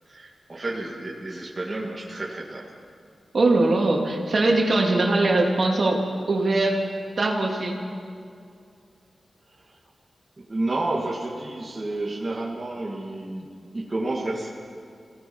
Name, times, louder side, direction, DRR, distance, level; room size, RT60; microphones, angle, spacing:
voice 1, 0.1-2.7 9.6-9.8 10.4-13.5 13.7-14.5, right 2 dB, 25° right, -4 dB, 2.1 m, -30 dB
voice 2, 3.3-6.8 7.2-7.8, right 2 dB, 50° right, 0 dB, 2.9 m, -21 dB
27.5 x 18.0 x 5.5 m, 2.4 s
wide cardioid pair, 145°, 0 cm